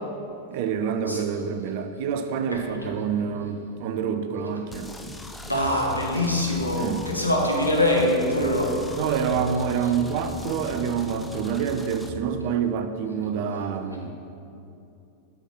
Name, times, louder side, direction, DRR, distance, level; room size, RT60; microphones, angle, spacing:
voice 1, 0.5-4.9 6.8-7.0 9.0-14.1, right 7 dB, 50° right, 8 dB, 0.5 m, -27 dB
sound 1, 4.7-12.1, left 2 dB, 5° left, 0.5 m, -39 dB
voice 2, 5.4-8.7, left 1 dB, 85° left, -2 dB, 1.2 m, -23 dB
5.7 x 5.7 x 5.5 m, 2.8 s
figure-of-eight pair, 90°, 0 cm